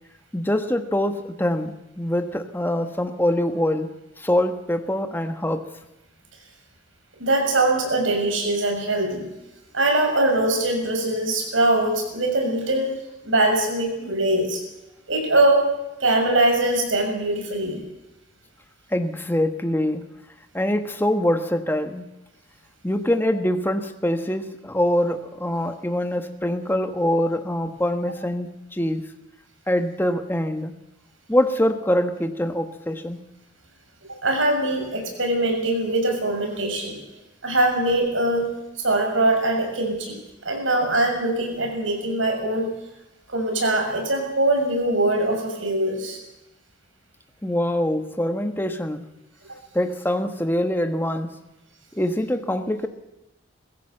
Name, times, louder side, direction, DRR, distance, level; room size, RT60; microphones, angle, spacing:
voice 1, 0.3-3.9 4.2-5.6 18.9-20.0 20.5-22.1 22.8-29.1 29.7-30.8 31.3-33.2 47.4-49.1 49.7-51.3 51.9-52.9, left 1 dB, 10° left, 7 dB, 1.2 m, -24 dB
voice 2, 7.2-9.2 9.7-12.9 13.2-14.6 15.1-15.6 16.0-17.8 34.2-37.0 37.4-38.5 38.8-40.2 40.4-42.7 43.3-46.2, right 2 dB, 80° right, 3 dB, 6.6 m, -22 dB
22.5 x 15.5 x 7.8 m, 0.94 s
head